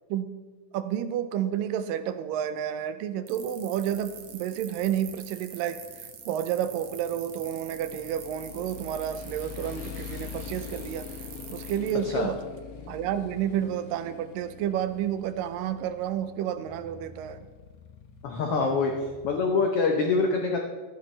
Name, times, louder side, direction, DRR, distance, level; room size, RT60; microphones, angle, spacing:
voice 1, 0.7-11.1 11.5-12.4 12.9-17.5, right 10 dB, 85° right, 11 dB, 2.3 m, -30 dB
sound 1, 3.3-11.9, right 8 dB, 65° right, 1.8 m, -45 dB
Motorcycle, 3.8-19.5, left 7 dB, 70° left, 1.6 m, -44 dB
voice 2, 18.2-18.9 19.2-20.6, left 4 dB, 90° left, 2 dB, 1.2 m, -24 dB
13.0 x 10.5 x 3.2 m, 1.3 s
omnidirectional pair, 3.9 m